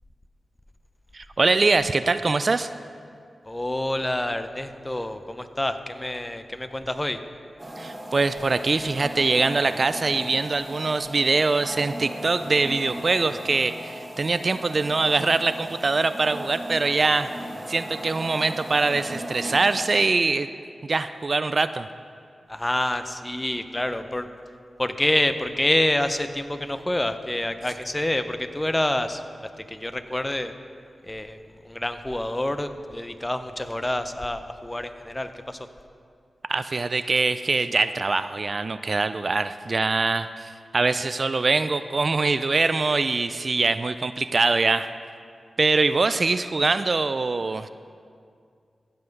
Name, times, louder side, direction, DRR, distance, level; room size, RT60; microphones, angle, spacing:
voice 1, 1.1-2.7 7.8-17.3 17.7-20.5 20.8-21.9 36.5-44.9 45.6-47.7, right 3 dB, 55° right, 12 dB, 0.3 m, -23 dB
voice 2, 3.4-7.2 22.5-24.3 24.8-29.2 29.6-30.5 31.0-35.7, left 1 dB, 20° left, 9 dB, 0.7 m, -27 dB
sound 1, 7.6-20.1, right 1 dB, 25° right, 1.6 m, -37 dB
15.5 x 5.7 x 5.2 m, 2.3 s
cardioid pair, 45°, 0 cm